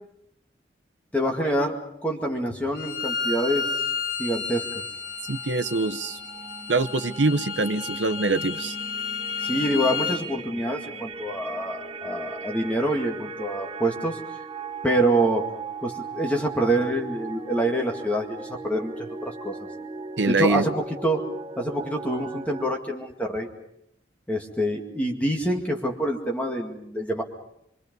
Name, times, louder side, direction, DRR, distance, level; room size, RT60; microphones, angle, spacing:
voice 1, 1.1-3.7 4.2-4.6 9.4-14.2 14.8-15.5 15.8-19.6 20.3-21.2 21.6-23.5 24.3-27.2, right 1 dB, 10° left, 1 dB, 2.1 m, -26 dB
Bowed string instrument, 2.7-10.2, left 6 dB, 75° left, 4.4 m, -32 dB
sound 1, 5.2-22.7, right 4 dB, 30° right, 1.3 m, -38 dB
voice 2, 5.3-6.2 6.7-8.7 20.2-20.7, right 3 dB, 80° right, 9 dB, 0.9 m, -24 dB
25.5 x 25.0 x 5.4 m, 0.78 s
head